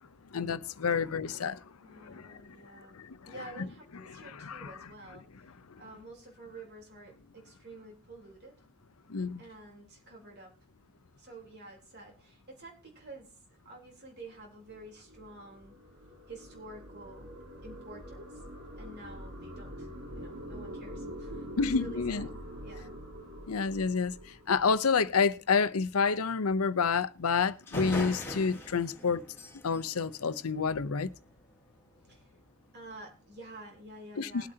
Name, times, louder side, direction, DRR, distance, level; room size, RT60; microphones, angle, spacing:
voice 1, 0.3-1.6 2.0-2.4 2.9-3.3 4.1-4.7 9.1-9.4 21.6-22.3 23.5-24.1 24.5-29.2 29.6-31.1 34.2-34.5, left 5 dB, 85° left, 0.7 m, -29 dB
voice 2, 1.8-5.5 5.8-8.6 9.4-10.5 11.2-13.3 13.6-15.7 16.3-17.3 17.6-18.4 18.8-19.9 20.1-21.5 21.8-23.0 32.1-32.3 32.7-34.5, right 2 dB, 50° right, 3.7 m, -49 dB
sound 1, 14.4-25.0, equal, 65° right, 3.7 m, -45 dB
sound 2, 27.2-27.3 27.7-31.1, left 1 dB, 10° left, 3.2 m, -41 dB
20.5 x 8.6 x 2.8 m
head